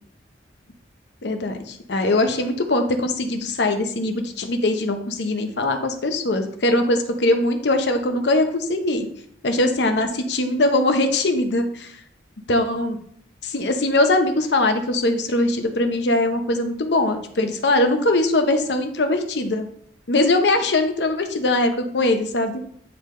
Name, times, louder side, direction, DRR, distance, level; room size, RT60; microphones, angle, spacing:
voice 1, 1.2-9.1 9.4-11.9 12.5-13.0 13.4-19.7 20.1-22.6, left 2 dB, 70° left, 6 dB, 0.8 m, -21 dB
8.7 x 3.4 x 3.7 m, 0.65 s
head